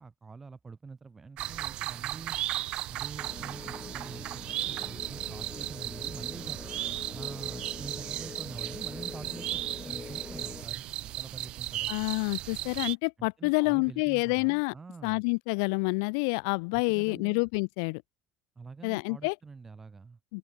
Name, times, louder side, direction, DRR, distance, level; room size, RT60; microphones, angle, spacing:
voice 1, 0.0-2.4 2.9-6.6 7.1-11.9 13.2-15.2 16.8-17.4 18.6-20.2, right 4 dB, 15° right, 5.2 m, -46 dB
sound 1, 1.4-12.9, right 15 dB, 40° right, 0.6 m, -36 dB
sound 2, 3.2-10.7, left 4 dB, 15° left, 2.9 m, -44 dB
voice 2, 11.9-14.7 15.0-18.0 18.8-19.3 20.3-20.4, left 35 dB, 85° left, 1.9 m, -28 dB
open air
cardioid pair, 175°, 2 cm